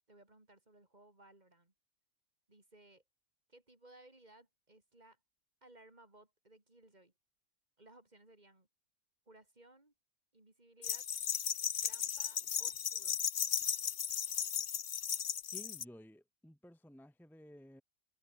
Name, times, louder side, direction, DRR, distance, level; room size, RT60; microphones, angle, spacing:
voice 1, 0.1-1.7 2.5-3.0 3.5-5.2 5.6-7.1 7.8-8.7 9.3-9.9 10.3-11.1 11.8-13.2, right 2 dB, 30° right, 3.3 m, -61 dB
sound 1, 10.8-15.8, left 8 dB, 50° left, 0.8 m, -36 dB
voice 2, 15.5-17.8, equal, ahead, 1.6 m, -55 dB
omnidirectional pair, 1.6 m